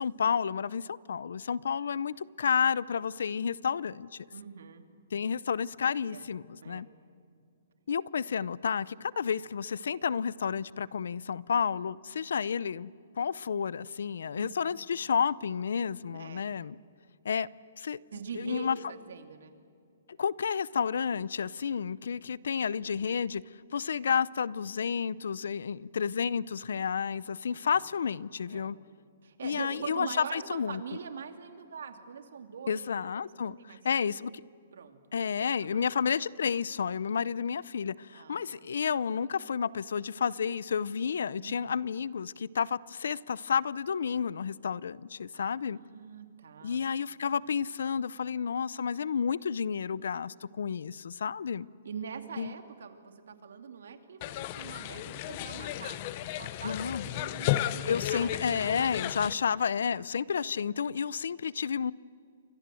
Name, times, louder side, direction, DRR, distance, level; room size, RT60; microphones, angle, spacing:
voice 1, 0.0-4.3 5.1-6.9 7.9-12.9 13.2-16.8 17.2-17.5 17.8-18.0 18.4-18.8 20.2-23.4 23.7-28.8 29.4-30.8 32.7-34.3 35.1-45.8 46.6-51.7 52.4-52.5 56.6-57.0 57.9-61.9, left 6 dB, 75° left, 0.6 m, -31 dB
voice 2, 4.3-4.8 6.1-6.2 6.6-6.8 14.4-14.5 16.1-16.5 18.1-19.6 27.5-27.8 28.5-28.7 29.2-34.3 34.7-35.9 38.1-38.6 41.4-41.8 45.3-46.8 51.8-58.4, right 6 dB, 70° right, 2.7 m, -44 dB
sound 1, 54.2-59.3, left 13 dB, 30° left, 0.7 m, -34 dB
29.0 x 25.0 x 7.7 m
hypercardioid pair, 170°, 0 cm